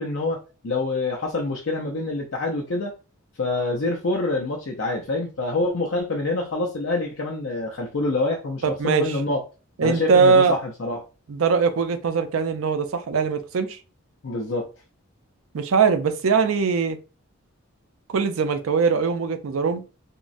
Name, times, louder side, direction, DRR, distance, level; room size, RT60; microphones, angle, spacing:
voice 1, 0.0-2.9 3.4-9.4 9.8-11.0 14.2-14.7, left 2 dB, 65° left, 0.5 m, -26 dB
voice 2, 8.6-9.2 9.8-10.6 11.3-13.8 15.5-17.0 18.1-19.8, right 5 dB, 80° right, 0.5 m, -21 dB
3.5 x 2.0 x 2.5 m
head